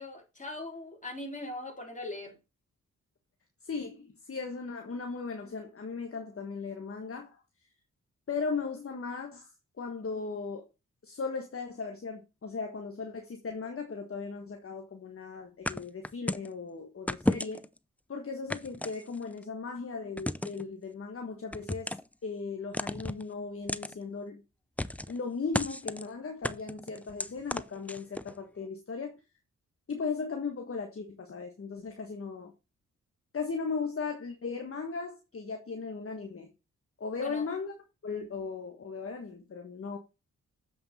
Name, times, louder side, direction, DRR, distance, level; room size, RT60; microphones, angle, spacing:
voice 1, 0.0-2.4 37.1-37.5, left 2 dB, 25° left, 3.7 m, -40 dB
voice 2, 3.6-7.4 8.3-9.5 9.8-10.6 11.0-17.7 18.1-21.9 22.2-24.4 25.1-29.1 29.9-32.5 33.3-36.5 37.0-37.7 38.0-40.0, left 4 dB, 45° left, 1.4 m, -37 dB
sound 1, 15.7-16.5 17.1-17.8 18.5-19.4 20.2-20.6 21.5-22.1 22.7-23.2 23.7-23.9 24.8-25.2 25.5-26.1 26.4-28.3, left 1 dB, 5° left, 0.4 m, -33 dB
7.6 x 5.4 x 4.2 m
cardioid pair, 50°, 31 cm